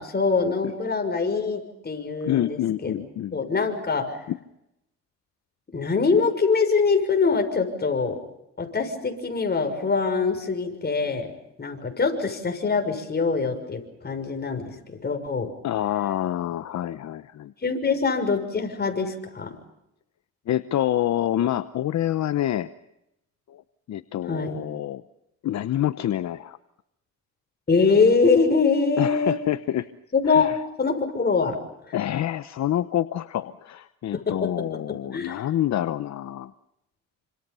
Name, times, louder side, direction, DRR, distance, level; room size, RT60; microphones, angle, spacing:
voice 1, 0.0-3.0 3.3-4.2 5.7-8.2 8.6-11.3 11.6-15.5 17.6-19.5 24.3-24.6 27.7-29.4 30.1-30.5 30.8-31.6 31.9-32.0 34.1-34.5 34.9-35.4, left 4 dB, 35° left, 5 dB, 6.4 m, -24 dB
voice 2, 2.2-3.4 4.3-4.4 15.6-17.5 20.5-22.7 23.5-23.6 23.9-25.0 25.4-26.6 29.0-29.9 30.3-30.6 31.9-36.5, left 12 dB, 65° left, 12 dB, 0.9 m, -27 dB
28.0 x 26.5 x 5.6 m, 0.84 s
cardioid pair, 90°, 30 cm